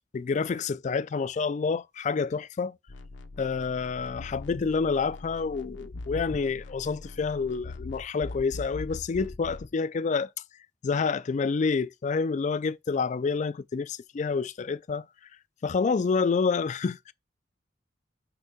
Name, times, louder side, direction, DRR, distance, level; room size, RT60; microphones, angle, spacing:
voice 1, 0.1-2.8 3.4-10.3 10.8-15.1 15.6-17.1, left 5 dB, 40° left, 0.3 m, -28 dB
sound 1, 2.9-9.7, left 2 dB, 80° left, 0.7 m, -41 dB
4.5 x 4.5 x 4.9 m
head